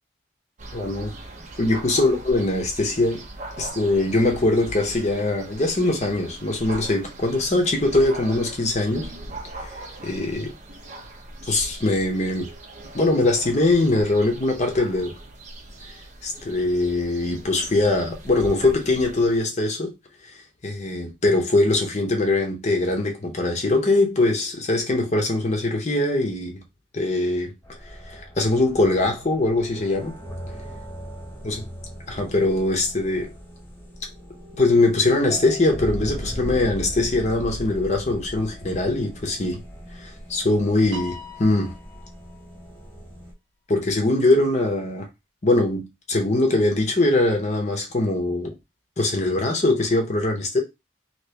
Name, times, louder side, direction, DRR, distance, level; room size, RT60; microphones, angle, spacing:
sound 1, 0.6-19.4, right 2 dB, 40° right, 0.7 m, -40 dB
voice 1, 0.7-1.1 1.6-3.2 3.6-9.1 9.6-9.7 10.0-10.5 11.4-12.5 12.9-15.1 16.2-19.9 20.3-26.6 26.9-27.5 28.1-30.2 31.4-31.7 32.1-33.3 34.6-39.6 39.9-41.7 43.7-45.1 45.4-48.5 49.0-50.6, left 2 dB, 40° left, 0.8 m, -22 dB
sound 2, 27.6-43.3, equal, 15° left, 1.1 m, -38 dB
Piano, 40.9-42.5, left 4 dB, 90° right, 1.1 m, -40 dB
2.9 x 2.9 x 3.3 m
head